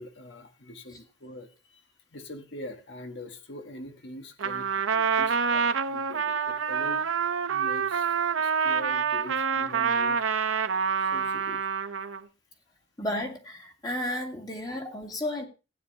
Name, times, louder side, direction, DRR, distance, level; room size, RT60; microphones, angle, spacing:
voice 1, 0.0-1.8 2.1-10.2 11.0-11.6, left 1 dB, 60° left, 7 dB, 1.3 m, -43 dB
Trumpet, 4.4-12.2, right 6 dB, 80° right, 0.8 m, -27 dB
voice 2, 13.0-15.4, left 1 dB, 20° left, 3 dB, 2.0 m, -33 dB
16.0 x 9.5 x 2.8 m, 0.31 s
head